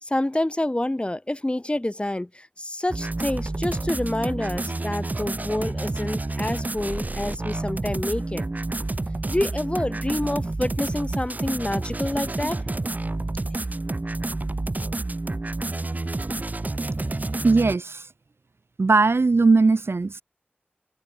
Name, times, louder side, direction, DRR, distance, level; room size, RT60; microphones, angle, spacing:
voice 1, 0.0-8.4 9.3-12.6, left 1 dB, 25° left, 2.6 m, -28 dB
sound 1, 2.9-17.8, right 2 dB, 45° right, 0.7 m, -29 dB
voice 2, 17.4-18.1 18.8-20.2, right 3 dB, 85° right, 1.4 m, -19 dB
wide cardioid pair, 55°, 4 cm